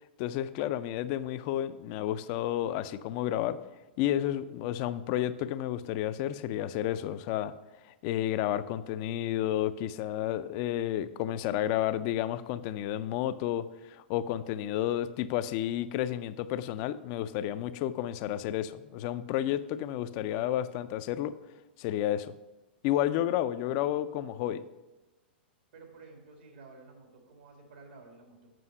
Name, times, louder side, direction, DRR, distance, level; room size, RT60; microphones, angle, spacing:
voice 1, 0.2-3.6 4.0-7.5 8.0-21.3 21.8-22.3 22.8-24.6, left 12 dB, 45° left, 14 dB, 0.4 m, -31 dB
voice 2, 25.7-28.5, right 3 dB, 70° right, 2 dB, 2.0 m, -52 dB
7.7 x 5.5 x 5.4 m, 1.1 s
hypercardioid pair, 105°, 6 cm